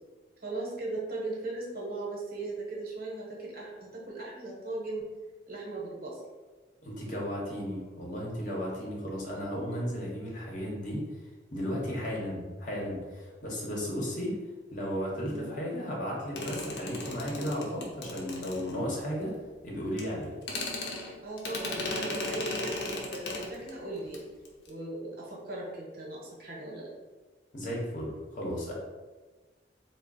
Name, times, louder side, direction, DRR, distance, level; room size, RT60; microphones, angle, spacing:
voice 1, 0.4-5.1 5.5-6.2 9.3-9.4 9.7-9.8 15.2-15.5 21.2-24.2 24.7-26.9, right 2 dB, 55° right, -3 dB, 0.9 m, -38 dB
voice 2, 6.8-11.0 11.5-14.3 14.7-19.3 19.6-20.3 27.5-28.7, equal, 45° left, -3 dB, 0.9 m, -34 dB
sound 1, 16.4-19.1 20.0-20.1 20.4-23.7 24.0-24.2 24.4-24.7, left 2 dB, 70° left, 0.7 m, -36 dB
3.5 x 2.0 x 3.9 m, 1.3 s
head